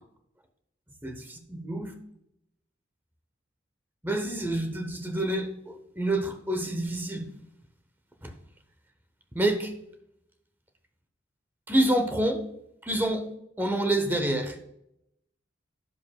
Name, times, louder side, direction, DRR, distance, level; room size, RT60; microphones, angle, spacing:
voice 1, 1.0-1.9 4.0-7.3 8.2-8.3 9.3-9.7 11.7-12.4 12.8-13.3 13.6-14.6, right 1 dB, 10° right, 0.8 m, -27 dB
11.0 x 7.1 x 2.3 m
head